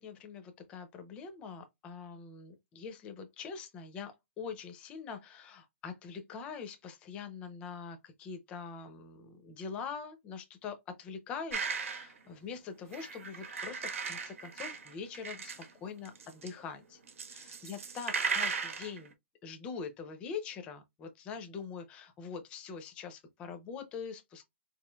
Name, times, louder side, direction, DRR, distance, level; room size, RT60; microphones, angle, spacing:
voice 1, 0.0-17.0 17.6-19.1 19.4-24.4, left 6 dB, 15° left, 0.5 m, -43 dB
sound 1, 11.5-12.2 12.9-15.7 16.1-16.5 17.1-19.1, right 5 dB, 85° right, 1.1 m, -37 dB
4.3 x 3.1 x 2.2 m
hypercardioid pair, 170°, 7 cm